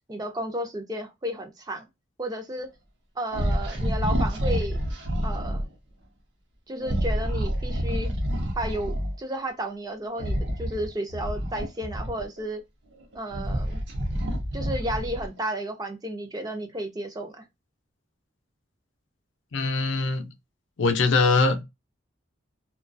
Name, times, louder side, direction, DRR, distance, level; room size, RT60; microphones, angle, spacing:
voice 1, 0.1-1.8 2.2-2.7 3.2-4.8 5.2-5.6 6.7-8.1 8.6-12.6 13.1-13.8 14.5-17.4, right 1 dB, 20° right, 0.4 m, -32 dB
sound 1, 3.3-5.7 6.8-9.2 10.1-12.4 13.0-15.4, equal, 60° right, 0.6 m, -28 dB
voice 2, 19.5-20.3 20.8-21.6, left 3 dB, 70° left, 0.4 m, -22 dB
2.3 x 2.2 x 2.5 m
head